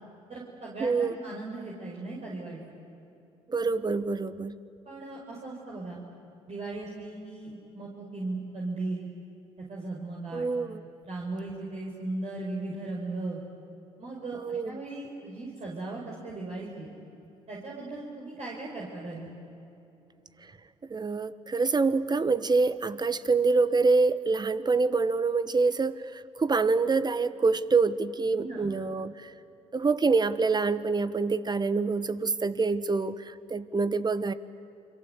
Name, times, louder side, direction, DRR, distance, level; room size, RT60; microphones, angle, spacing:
voice 1, 0.3-2.6 4.9-6.0 6.5-9.1 9.7-10.4 11.0-13.4 14.0-16.9 17.5-19.3 28.4-28.7, right 2 dB, 45° right, -3 dB, 5.4 m, -37 dB
voice 2, 0.8-1.2 3.5-4.6 10.3-10.8 14.3-14.8 20.4-20.5 20.8-29.3 29.7-34.3, right 4 dB, 30° right, 14 dB, 1.2 m, -26 dB
29.0 x 23.0 x 8.2 m, 2.9 s
hypercardioid pair, 55°, 15 cm